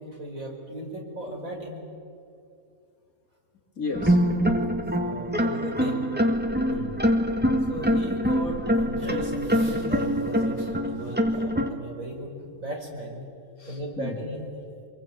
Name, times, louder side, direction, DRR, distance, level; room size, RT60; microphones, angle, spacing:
voice 1, 0.0-1.8 5.0-6.1 7.7-13.3 13.7-14.4, right 1 dB, 70° right, 0 dB, 5.5 m, -36 dB
voice 2, 3.8-4.2 4.6-5.2 6.7-7.0 13.6-14.2, left 3 dB, 80° left, 2 dB, 3.3 m, -35 dB
sound 1, 3.9-11.7, equal, 5° right, 1.6 m, -24 dB
25.5 x 24.0 x 9.0 m, 2.4 s
omnidirectional pair, 1.5 m